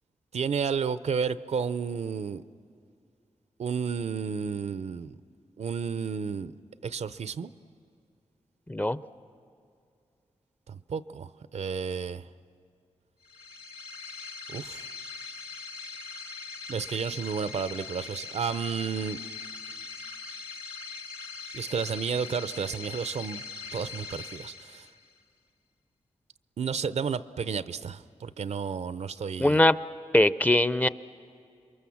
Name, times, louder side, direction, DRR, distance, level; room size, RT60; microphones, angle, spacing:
voice 1, 0.3-2.4 3.6-5.2 5.6-6.5 6.8-7.5 10.7-12.3 14.5-14.9 16.7-19.2 21.5-23.4 23.7-24.9 26.6-29.6, right 6 dB, 70° right, 15 dB, 0.6 m, -32 dB
sound 1, 13.2-25.2, left 4 dB, 50° left, 1.5 m, -41 dB
voice 2, 29.4-29.8 30.1-30.9, left 1 dB, 15° left, 15 dB, 0.6 m, -21 dB
29.0 x 23.0 x 7.2 m, 2.4 s
cardioid pair, 60°, 12 cm